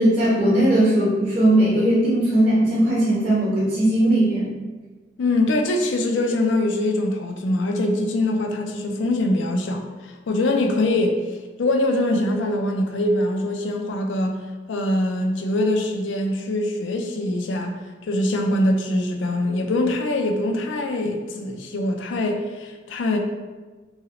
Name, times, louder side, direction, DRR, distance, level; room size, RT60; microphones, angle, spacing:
voice 1, 0.0-4.5, right 1 dB, 35° right, -10 dB, 0.8 m, -18 dB
voice 2, 5.2-11.2 11.6-14.4 14.7-23.2, left 1 dB, 70° left, 3 dB, 0.4 m, -23 dB
2.8 x 2.7 x 2.8 m, 1.3 s
head